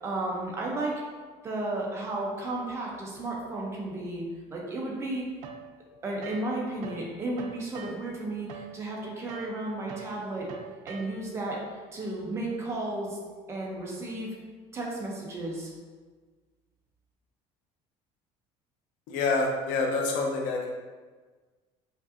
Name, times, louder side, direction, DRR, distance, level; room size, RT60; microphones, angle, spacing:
voice 1, 0.0-1.0 1.4-5.3 6.0-10.5 10.8-11.6 11.9-13.2 13.5-14.3 14.7-15.7, right 2 dB, 20° right, -2 dB, 0.6 m, -33 dB
sound 1, 5.4-7.1 7.3-11.4, right 7 dB, 70° right, 0.5 m, -45 dB
voice 2, 19.1-20.7, left 3 dB, 90° left, 0 dB, 0.7 m, -27 dB
5.2 x 2.6 x 2.6 m, 1.4 s
cardioid pair, 175°, 13 cm